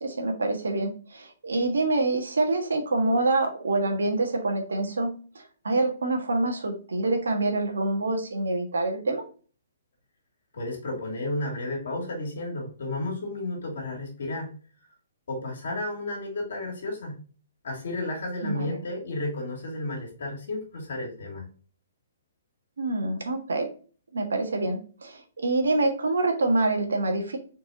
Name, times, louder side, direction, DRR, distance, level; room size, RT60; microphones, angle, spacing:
voice 1, 0.0-5.1 5.3-9.2 18.4-18.8 22.8-23.7 24.1-27.4, right 2 dB, 80° right, 4 dB, 1.4 m, -26 dB
voice 2, 10.5-14.5 15.3-17.2 17.6-21.5, left 2 dB, 70° left, -1 dB, 2.5 m, -32 dB
4.6 x 4.1 x 2.8 m, 0.39 s
hypercardioid pair, 130°, 0 cm